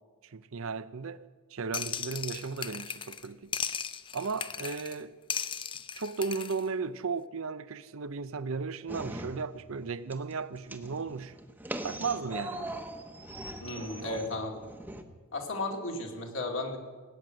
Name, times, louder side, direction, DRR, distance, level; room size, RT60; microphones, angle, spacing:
voice 1, 0.3-1.3 1.5-3.5 4.1-5.1 6.0-11.3 11.8-12.8 14.0-14.4, right 4 dB, 70° right, 0.6 m, -35 dB
sound 1, 1.7-3.3 3.5-5.0 5.3-6.6, left 7 dB, 25° left, 0.4 m, -36 dB
sound 2, 8.9-9.8 10.1-15.0, right 1 dB, 10° right, 0.9 m, -41 dB
voice 2, 13.6-14.6 15.3-16.8, left 2 dB, 65° left, 2.4 m, -34 dB
19.0 x 9.4 x 7.5 m
head